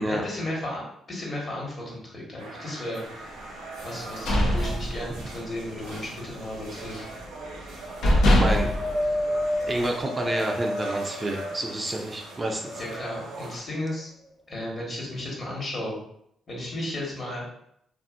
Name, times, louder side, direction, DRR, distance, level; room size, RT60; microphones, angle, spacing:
voice 1, 0.1-3.4 3.8-7.1 12.8-14.1 14.5-16.0 16.5-17.4, left 1 dB, 50° left, -3 dB, 1.3 m, -34 dB
sound 1, 2.4-13.6, right 2 dB, 85° right, 0.6 m, -41 dB
sound 2, 3.9-5.5 5.8-6.1 6.4-7.2 7.7-7.8 8.0-9.8, left 1 dB, 80° left, 0.6 m, -23 dB
voice 2, 8.3-8.7 9.7-12.8, right 1 dB, 30° right, 2 dB, 0.4 m, -29 dB
Wind, 8.4-11.9 12.5-13.5 14.3-14.4, left 1 dB, 20° left, 0.7 m, -31 dB
2.6 x 2.5 x 2.5 m, 0.71 s
supercardioid pair, 55°, 0 cm